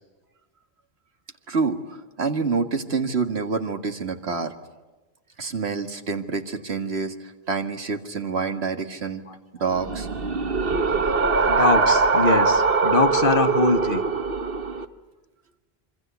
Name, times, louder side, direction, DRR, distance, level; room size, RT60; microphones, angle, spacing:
voice 1, 1.5-4.5 5.4-9.2 9.6-10.1, right 4 dB, 75° right, 6 dB, 2.1 m, -27 dB
sound 1, 9.7-14.9, right 4 dB, 60° right, 1.5 m, -22 dB
voice 2, 11.5-14.0, left 3 dB, 55° left, 9 dB, 1.4 m, -22 dB
26.5 x 25.0 x 8.2 m, 1.2 s
omnidirectional pair, 1.1 m